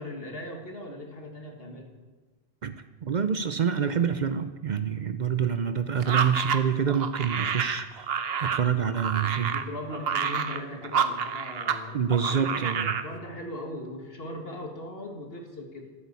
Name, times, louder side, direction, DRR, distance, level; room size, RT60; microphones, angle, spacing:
voice 1, 0.0-1.9 9.5-15.9, left 1 dB, 65° left, 3 dB, 2.3 m, -39 dB
voice 2, 3.0-8.1 8.4-9.6 11.9-12.9, right 7 dB, 50° right, 11 dB, 0.7 m, -27 dB
sound 1, 6.0-11.8 12.1-13.1, right 7 dB, 70° right, 1.1 m, -29 dB
14.0 x 8.8 x 8.3 m, 1.3 s
omnidirectional pair, 1.1 m